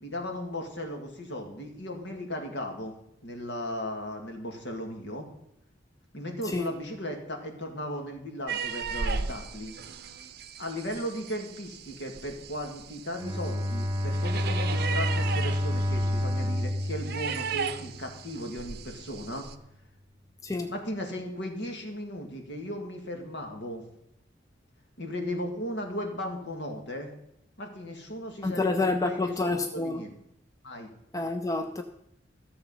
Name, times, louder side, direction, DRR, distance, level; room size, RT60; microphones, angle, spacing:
voice 1, 0.0-2.9 3.2-5.2 6.1-9.7 10.6-19.5 20.7-23.8 25.0-27.1 27.6-30.1 30.6-30.9, left 1 dB, 65° left, 2.0 m, -36 dB
sound 1, 8.5-19.6, right 5 dB, 55° right, 0.6 m, -37 dB
Bowed string instrument, 13.2-18.1, left 1 dB, 15° right, 1.1 m, -29 dB
voice 2, 28.4-30.0 31.1-31.8, left 3 dB, 20° left, 0.5 m, -28 dB
14.0 x 7.0 x 5.5 m
head